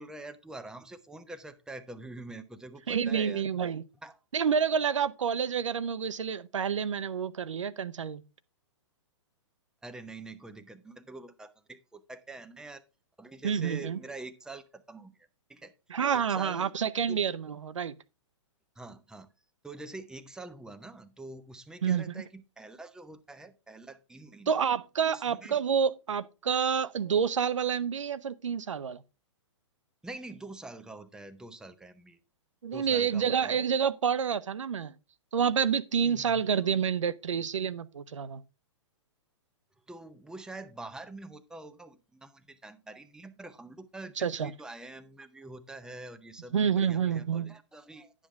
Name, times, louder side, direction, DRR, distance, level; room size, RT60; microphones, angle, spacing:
voice 1, 0.0-3.5 4.0-4.2 9.8-12.8 13.2-15.2 15.5-15.7 16.1-16.7 17.1-17.2 18.8-19.3 19.6-24.6 25.1-25.6 30.0-32.2 32.7-33.6 36.0-36.4 39.9-48.1, right 2 dB, 5° right, 0.7 m, -45 dB
voice 2, 2.9-3.8 4.3-8.2 13.4-14.0 15.9-18.0 21.8-22.1 24.5-29.0 32.6-34.9 35.3-38.4 44.2-44.5 46.5-47.5, right 7 dB, 80° right, 0.6 m, -28 dB
10.0 x 7.4 x 3.5 m
hypercardioid pair, 120°, 16 cm